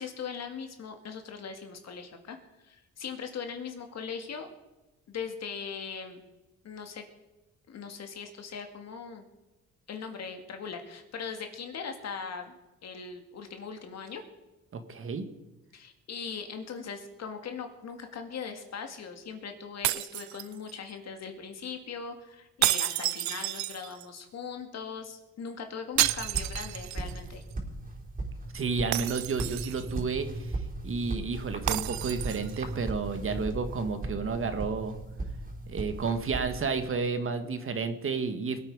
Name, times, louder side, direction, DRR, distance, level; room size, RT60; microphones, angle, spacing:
voice 1, 0.0-2.4 2.6-4.5 5.1-6.2 6.6-7.0 7.7-9.2 9.9-12.5 12.8-14.2 15.7-27.4, left 6 dB, 60° left, 6 dB, 2.1 m, -40 dB
voice 2, 14.7-15.2 28.5-30.5 30.8-35.0 35.7-38.6, right 4 dB, 45° right, 8 dB, 1.6 m, -31 dB
sound 1, 19.8-20.9 22.6-24.2 26.0-27.2 27.5-27.6 28.9-30.0 31.7-32.6, right 16 dB, 70° right, 0.4 m, -30 dB
sound 2, 26.0-36.9, right 2 dB, 30° right, 4.2 m, -38 dB
21.5 x 8.8 x 4.8 m, 1.0 s
cardioid pair, 90°, 30 cm